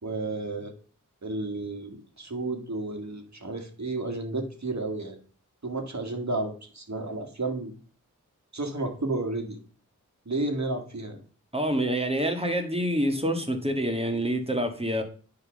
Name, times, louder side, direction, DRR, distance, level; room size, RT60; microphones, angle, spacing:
voice 1, 0.0-0.7 1.2-5.2 5.6-7.7 8.5-9.6 10.3-11.2, right 2 dB, 55° right, 3 dB, 1.9 m, -32 dB
voice 2, 11.5-15.0, equal, 20° right, 5 dB, 1.7 m, -27 dB
9.4 x 3.8 x 6.3 m, 0.40 s
wide cardioid pair, 50°, 33 cm